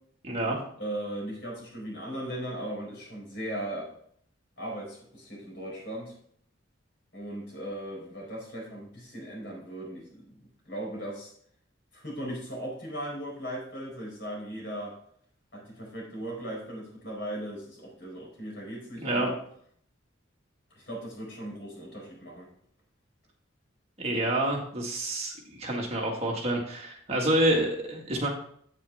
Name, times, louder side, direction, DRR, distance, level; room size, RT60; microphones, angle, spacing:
voice 1, 0.2-0.6 19.0-19.3 24.0-28.3, right 1 dB, 30° right, -1 dB, 1.8 m, -28 dB
voice 2, 0.8-3.9 4.6-6.1 7.1-10.2 10.7-11.3 11.9-15.0 15.5-19.3 20.7-22.5, right 1 dB, 55° left, -2 dB, 4.5 m, -38 dB
8.8 x 8.2 x 3.5 m, 0.63 s
head